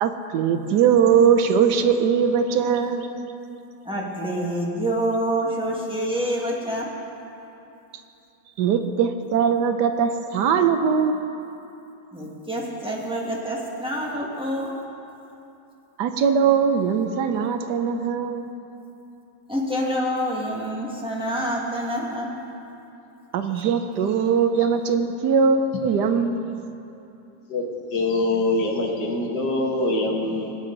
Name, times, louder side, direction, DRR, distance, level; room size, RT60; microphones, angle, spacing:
voice 1, 0.0-3.1 8.6-11.2 16.0-18.5 23.3-26.4, right 6 dB, 75° right, 7 dB, 1.2 m, -21 dB
voice 2, 3.8-6.9 12.1-14.7 19.5-22.3 23.5-23.6, equal, 5° right, -4 dB, 1.5 m, -27 dB
voice 3, 27.9-30.6, left 2 dB, 80° left, 0 dB, 2.0 m, -24 dB
19.5 x 8.2 x 3.9 m, 2.8 s
omnidirectional pair, 1.8 m